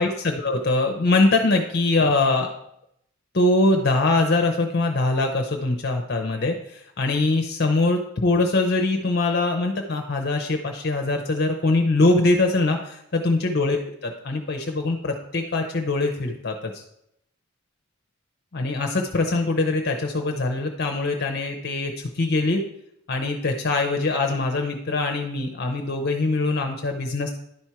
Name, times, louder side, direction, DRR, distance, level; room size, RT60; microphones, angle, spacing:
voice 1, 0.0-2.5 3.3-16.8 18.5-22.6 23.1-27.3, left 2 dB, 50° left, 4 dB, 0.7 m, -23 dB
10.5 x 4.4 x 4.6 m, 0.76 s
head